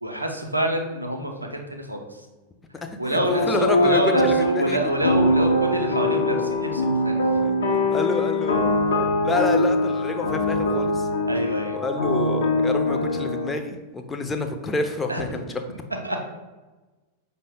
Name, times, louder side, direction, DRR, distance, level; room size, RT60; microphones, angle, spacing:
voice 1, 0.0-2.1 3.0-7.2 11.3-11.8 15.1-15.2 16.0-16.2, equal, 85° right, 3 dB, 0.5 m, -26 dB
voice 2, 2.8-4.8 7.4-7.6 7.9-8.8 9.2-11.1 11.7-15.6, left 3 dB, 15° left, 5 dB, 0.4 m, -28 dB
sound 1, 3.3-13.5, left 1 dB, 65° left, 0.5 m, -23 dB
5.2 x 2.1 x 3.5 m, 1.2 s
figure-of-eight pair, 90°, 0 cm